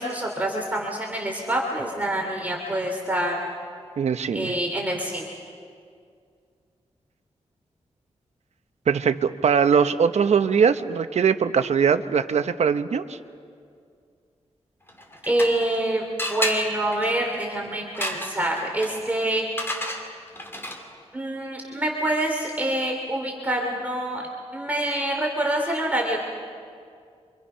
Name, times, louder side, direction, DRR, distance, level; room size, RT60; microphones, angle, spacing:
voice 1, 0.0-3.4 4.3-5.3 15.2-19.5 21.1-24.2 24.5-26.2, right 1 dB, 15° right, -1 dB, 2.9 m, -26 dB
voice 2, 4.0-4.5 8.9-13.2, right 6 dB, 75° right, 10 dB, 0.9 m, -21 dB
sound 1, 14.9-15.8 16.2-21.0, left 1 dB, 20° left, 2.7 m, -32 dB
28.5 x 25.0 x 5.6 m, 2.3 s
wide cardioid pair, 100°, 11 cm